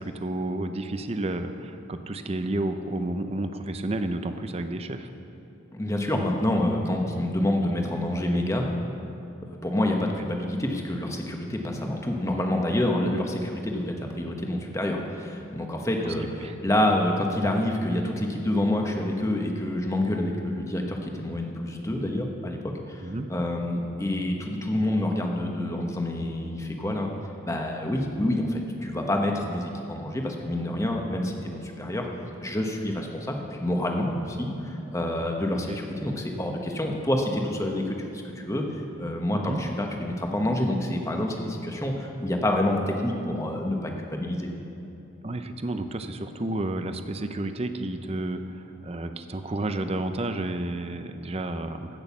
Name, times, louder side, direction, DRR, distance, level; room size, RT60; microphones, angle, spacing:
voice 1, 0.0-5.1 10.2-10.3 16.0-16.1 16.4-16.6 23.0-23.3 35.7-35.8 39.3-39.6 45.2-52.0, right 2 dB, 30° right, 8 dB, 0.6 m, -31 dB
voice 2, 5.7-8.7 9.5-27.1 27.4-32.1 32.4-38.6 39.0-44.5, left 1 dB, 15° left, 2 dB, 1.1 m, -27 dB
15.5 x 6.3 x 7.2 m, 2.8 s
head